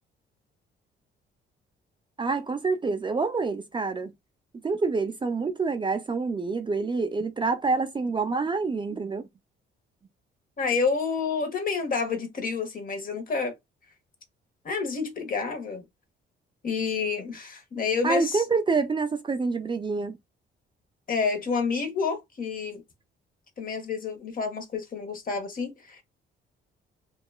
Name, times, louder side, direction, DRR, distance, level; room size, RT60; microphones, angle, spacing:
voice 1, 2.2-4.1 4.6-9.3 18.0-20.1, right 4 dB, 25° right, 0.4 m, -27 dB
voice 2, 10.6-13.5 14.6-15.8 16.6-18.4 21.1-22.8 23.6-26.0, left 5 dB, 45° left, 1.0 m, -29 dB
2.9 x 2.3 x 2.2 m
cardioid pair, 90°, 20 cm